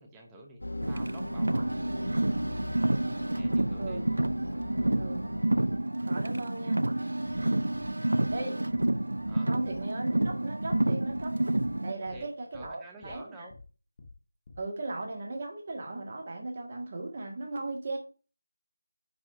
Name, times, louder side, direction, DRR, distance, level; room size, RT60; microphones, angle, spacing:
voice 1, 0.0-1.8 3.3-4.1 9.3-9.5 11.9-12.3 12.5-13.5, right 2 dB, 5° right, 1 dB, 0.8 m, -49 dB
sound 1, 0.6-5.8, left 1 dB, 80° left, 1.2 m, -39 dB
Car, 0.8-11.9, right 1 dB, 80° right, 0.5 m, -29 dB
voice 2, 5.0-5.3 6.1-6.8 8.3-8.7 9.4-11.4 11.8-13.2 14.6-18.0, right 2 dB, 30° right, 1 dB, 1.7 m, -37 dB
sound 2, 7.3-7.4 7.7-7.9 8.2-8.4 8.7-8.9 9.2-9.3 9.7-9.8 10.1-10.3 10.6-10.8 11.1-11.3 11.6-11.7 12.1-12.2 12.5-12.7 13.0-13.2 13.5-13.7 14.0-14.1 14.5-14.6, left 3 dB, 25° left, 1.2 m, -50 dB
9.5 x 4.2 x 4.9 m, 0.37 s
figure-of-eight pair, 175°, 0 cm